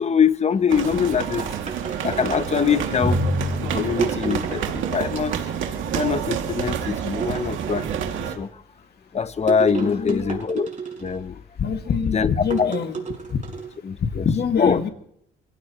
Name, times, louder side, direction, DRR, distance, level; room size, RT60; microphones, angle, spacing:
voice 1, 0.0-1.5 2.0-3.2 3.6-5.4 5.9-8.5 9.1-10.7 11.0-11.4 12.1-12.7 13.8-14.2 14.6-14.8, left 6 dB, 35° left, 0.9 m, -23 dB
sound 1, 0.7-8.3, right 8 dB, 80° right, 2.4 m, -28 dB
sound 2, 1.4-2.8 4.0-4.7 5.1-5.8 7.2-8.1 9.5-11.3 12.5-13.8, right 5 dB, 40° right, 6.3 m, -32 dB
Drum, 3.0-5.4, left 1 dB, 15° left, 2.4 m, -28 dB
voice 2, 9.8-10.2 11.6-13.0 13.3-13.4 14.0-14.9, left 6 dB, 55° left, 2.1 m, -24 dB
27.5 x 16.5 x 3.1 m
cardioid pair, 90°, 20 cm